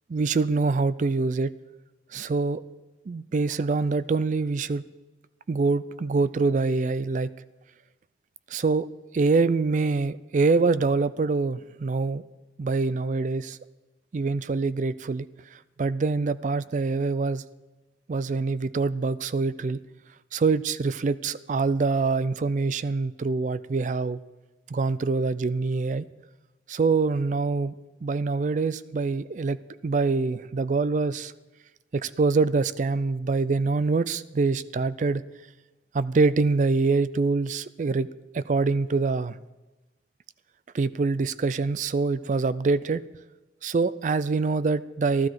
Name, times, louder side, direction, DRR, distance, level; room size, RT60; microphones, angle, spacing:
voice 1, 0.1-1.5 2.1-2.6 3.1-4.9 5.5-7.3 8.5-8.9 9.1-12.2 12.6-13.6 14.1-15.3 15.8-17.4 18.1-19.8 20.3-24.2 24.7-26.1 26.7-27.8 28.0-31.3 31.9-35.2 35.9-38.1 38.3-39.4 40.7-43.0 43.6-45.3, right 4 dB, 45° right, 16 dB, 0.3 m, -25 dB
13.5 x 13.0 x 4.7 m, 1.1 s
head